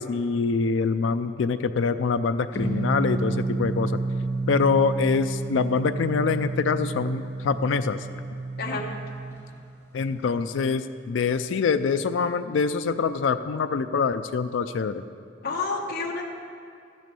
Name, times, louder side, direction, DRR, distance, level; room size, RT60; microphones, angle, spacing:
voice 1, 0.0-4.0 4.5-8.0 9.9-15.0, left 5 dB, 75° left, 10 dB, 0.4 m, -25 dB
sound 1, 2.5-9.4, right 3 dB, 15° left, 1.4 m, -30 dB
voice 2, 8.6-8.9 15.4-16.2, left 3 dB, 55° left, 0 dB, 1.1 m, -29 dB
13.0 x 6.3 x 6.8 m, 2.4 s
head